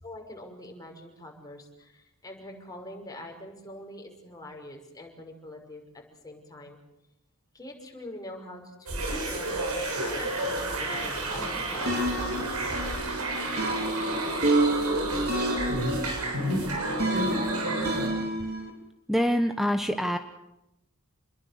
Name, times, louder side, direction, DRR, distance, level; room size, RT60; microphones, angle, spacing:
voice 1, 0.0-6.8 7.5-13.1 15.1-15.4, left 1 dB, 15° left, 1 dB, 6.0 m, -44 dB
sound 1, 8.9-18.1, right 1 dB, 85° right, 7.4 m, -30 dB
sound 2, 11.8-18.7, right 1 dB, 50° right, 4.7 m, -30 dB
voice 2, 19.1-20.2, equal, ahead, 7 dB, 1.2 m, -25 dB
28.0 x 22.0 x 6.7 m, 0.87 s
head